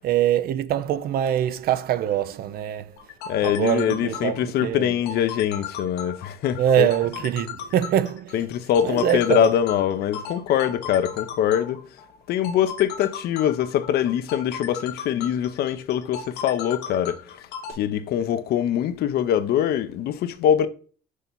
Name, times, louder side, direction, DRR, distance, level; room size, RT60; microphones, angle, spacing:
voice 1, 0.0-3.0 3.4-5.0 6.6-8.4 8.8-9.5, right 11 dB, 65° right, 0.5 m, -24 dB
sound 1, 3.0-17.7, left 7 dB, 85° left, 1.1 m, -36 dB
voice 2, 3.3-6.9 8.3-11.9 12.3-17.4 17.7-20.7, left 10 dB, 70° left, 0.7 m, -23 dB
6.4 x 2.9 x 5.2 m
cardioid pair, 110°, 17 cm